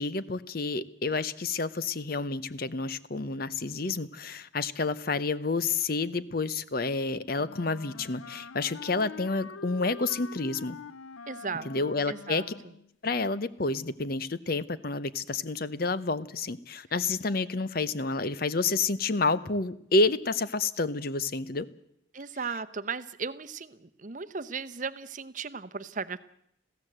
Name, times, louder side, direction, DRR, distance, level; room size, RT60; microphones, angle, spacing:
voice 1, 0.0-10.8 11.6-12.4 13.0-21.7, left 3 dB, 45° left, 15 dB, 0.8 m, -29 dB
Wind instrument woodwind instrument, 7.4-12.9, left 5 dB, 90° left, 0.7 m, -45 dB
voice 2, 11.3-11.7 12.1-12.5 22.1-26.2, right 5 dB, 40° right, 13 dB, 0.8 m, -36 dB
21.0 x 15.5 x 7.9 m, 0.75 s
head